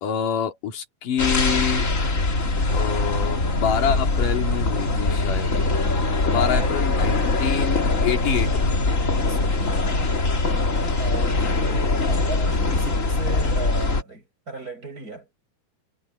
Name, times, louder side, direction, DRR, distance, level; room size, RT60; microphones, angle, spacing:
voice 1, 0.0-1.9 2.7-5.5 6.2-8.7 11.1-11.2, left 8 dB, 60° left, 3.9 m, -26 dB
sound 1, 1.2-14.0, left 2 dB, 30° left, 1.6 m, -22 dB
voice 2, 6.2-6.7 9.3-10.1 11.0-15.3, right 3 dB, 20° right, 8.2 m, -36 dB
omnidirectional pair, 4.4 m